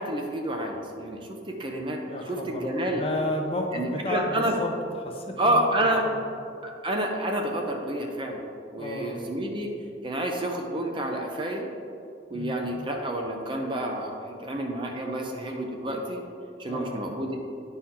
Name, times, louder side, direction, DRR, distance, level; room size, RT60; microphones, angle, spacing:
voice 1, 0.0-2.0 2.3-3.1 3.7-4.6 5.4-6.0 6.6-8.4 8.7-9.7 10.0-11.7 12.3-16.2 16.6-17.4, right 1 dB, 25° right, 2 dB, 0.6 m, -29 dB
voice 2, 2.1-4.7 5.0-5.7 6.1-6.2 8.8-9.2 12.3-12.7 16.7-17.1, left 1 dB, 30° left, 2 dB, 0.7 m, -32 dB
10.5 x 4.3 x 3.7 m, 2.5 s
head